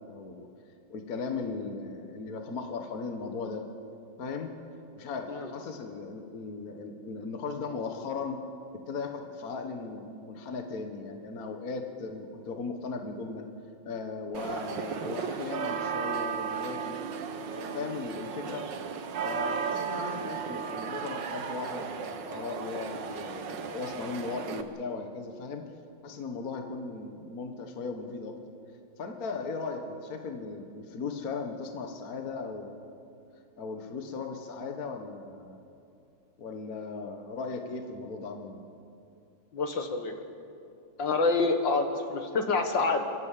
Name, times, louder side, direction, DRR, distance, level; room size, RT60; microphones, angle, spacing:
voice 1, 0.1-0.5 0.9-3.6 4.2-4.5 5.0-8.4 8.9-13.4 13.9-17.2 17.5-18.7 19.2-25.6 26.0-28.4 29.0-32.9 33.6-35.6 36.4-38.6, left 4 dB, 50° left, 4 dB, 1.7 m, -37 dB
sound 1, 14.3-24.6, right 6 dB, 65° right, 1.7 m, -35 dB
voice 2, 39.5-40.1 41.0-43.0, left 3 dB, 65° left, 5 dB, 2.1 m, -27 dB
30.0 x 12.5 x 8.4 m, 2.6 s
omnidirectional pair, 2.3 m